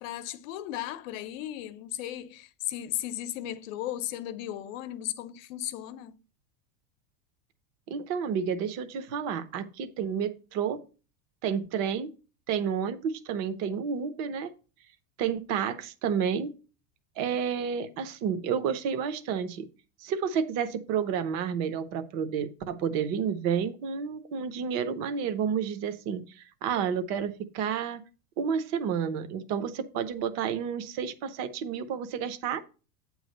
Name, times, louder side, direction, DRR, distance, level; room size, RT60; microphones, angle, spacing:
voice 1, 0.0-6.2, left 12 dB, 55° left, 0.8 m, -36 dB
voice 2, 7.9-10.8 11.4-12.1 12.5-14.5 15.2-16.5 17.2-19.7 20.0-28.0 28.4-32.6, right 7 dB, 35° right, 0.7 m, -30 dB
8.6 x 3.2 x 6.4 m
supercardioid pair, 160°, 47 cm